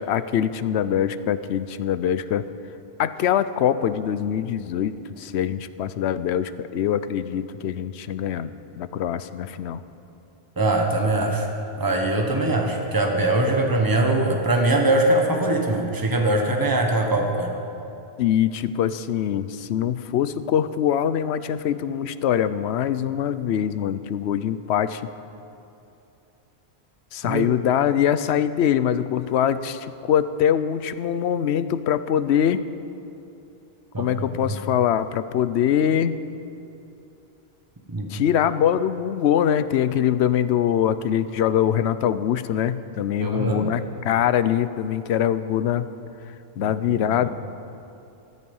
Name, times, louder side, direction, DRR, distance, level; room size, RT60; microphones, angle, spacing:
voice 1, 0.0-2.5 3.0-9.8 18.2-25.0 27.1-32.6 34.0-36.2 38.1-45.9 46.6-47.3, left 9 dB, 80° left, 14 dB, 0.9 m, -23 dB
voice 2, 10.6-11.5 11.8-17.6 27.2-27.5 33.9-34.1 34.5-34.6 37.9-38.1 43.2-43.7 46.6-47.0, right 2 dB, 20° right, 2 dB, 1.3 m, -22 dB
14.0 x 13.5 x 5.4 m, 2.8 s
omnidirectional pair, 1.1 m